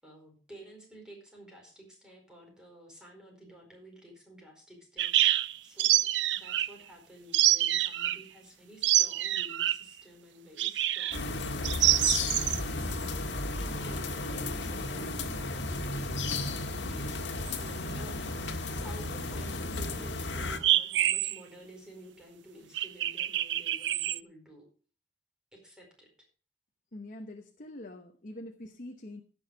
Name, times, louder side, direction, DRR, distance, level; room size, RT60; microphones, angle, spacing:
voice 1, 0.0-12.2 13.5-18.2 18.8-24.7 25.5-26.3, right 1 dB, 5° right, -1 dB, 4.6 m, -52 dB
sound 1, 5.0-6.7 7.3-8.2 8.8-9.9 10.6-11.2 11.6-12.6 17.5-17.6 20.6-21.4 22.7-24.2, right 13 dB, 70° right, 0.5 m, -26 dB
sound 2, 11.1-20.6, left 2 dB, 75° left, 1.5 m, -34 dB
voice 2, 26.9-29.2, left 1 dB, 45° left, 4 dB, 1.0 m, -44 dB
15.5 x 6.3 x 5.2 m, 0.39 s
head